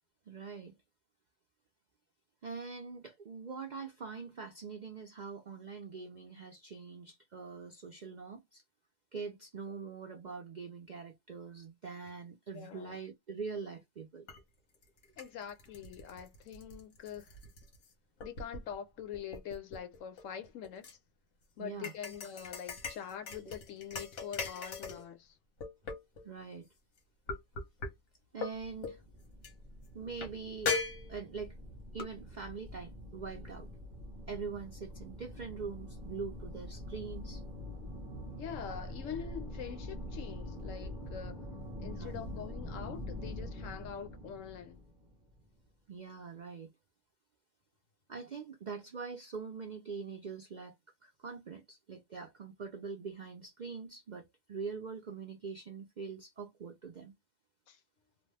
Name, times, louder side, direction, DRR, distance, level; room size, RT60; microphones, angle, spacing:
voice 1, 0.3-0.7 2.4-8.6 9.1-14.3 21.6-21.9 26.2-26.7 28.3-29.0 29.9-30.8 31.1-31.6 31.9-33.7 34.3-37.4 41.8-42.2 45.9-46.7 48.1-50.7 51.0-57.1, right 5 dB, 60° right, 0.4 m, -43 dB
voice 2, 12.5-13.0 15.2-17.3 18.2-21.0 21.6-25.4 38.4-41.4 41.8-44.8 57.7-57.8, left 8 dB, 70° left, 1.0 m, -44 dB
sound 1, 14.3-14.4 14.8-17.9 18.2-18.7 19.1-20.9 21.8-25.1 25.6-26.3 27.3-27.9 28.4-28.5 28.8-29.0 29.4-29.5 30.2-30.3 30.7-31.5 32.0-32.1, left 4 dB, 85° left, 1.4 m, -39 dB
sound 2, 28.5-45.5, left 1 dB, 5° right, 0.4 m, -45 dB
3.0 x 2.1 x 3.2 m
omnidirectional pair, 1.4 m